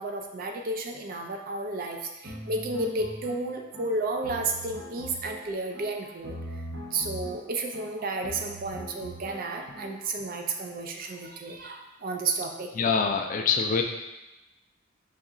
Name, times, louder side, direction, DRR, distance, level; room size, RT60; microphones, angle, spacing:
voice 1, 0.0-6.4 6.9-12.7, right 2 dB, 50° right, 3 dB, 0.4 m, -32 dB
sound 1, 2.2-10.2, equal, 75° right, 0.8 m, -41 dB
voice 2, 12.7-13.8, left 5 dB, 40° left, 4 dB, 0.3 m, -24 dB
4.1 x 2.4 x 3.7 m, 0.99 s
head